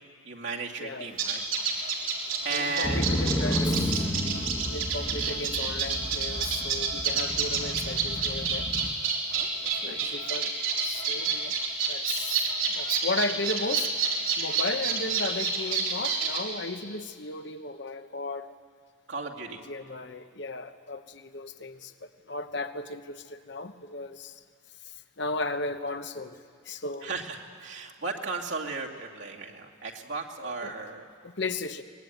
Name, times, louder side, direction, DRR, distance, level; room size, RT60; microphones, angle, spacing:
voice 1, 0.2-1.4 2.4-3.1 5.0-5.4 9.3-10.1 19.1-19.6 27.0-31.1, right 4 dB, 65° right, -1 dB, 2.5 m, -35 dB
voice 2, 0.8-1.1 2.5-4.1 4.6-8.7 9.8-10.5 10.8-11.6 11.9-13.9 14.4-18.5 19.7-24.4 24.8-26.4 26.6-27.1 30.4-30.8 31.2-31.8, left 2 dB, 60° left, 9 dB, 1.1 m, -35 dB
sound 1, 1.2-16.4, right 5 dB, 85° right, 4.2 m, -29 dB
Motorcycle, 2.8-8.9, equal, 20° left, 1.3 m, -32 dB
24.5 x 20.5 x 9.4 m, 2.1 s
head